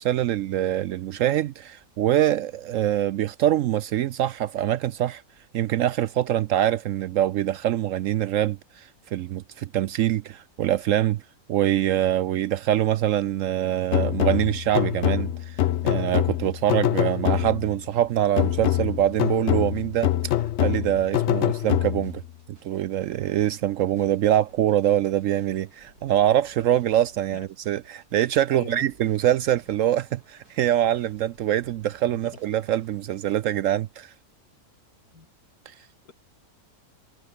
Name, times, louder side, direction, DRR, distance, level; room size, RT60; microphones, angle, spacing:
voice 1, 0.0-5.2 5.5-11.2 11.5-15.6 15.8-20.1 20.6-22.2 22.5-34.1, right 12 dB, 70° right, 0.8 m, -24 dB
sound 1, 13.9-17.8 18.4-22.2, left 12 dB, 65° left, 0.7 m, -25 dB
sound 2, 15.6-33.4, right 2 dB, 85° right, 7.6 m, -57 dB
voice 2, 28.5-28.9 32.1-32.4 35.1-35.3 35.7-36.1, left 5 dB, 80° left, 3.2 m, -42 dB
omnidirectional pair, 1.6 m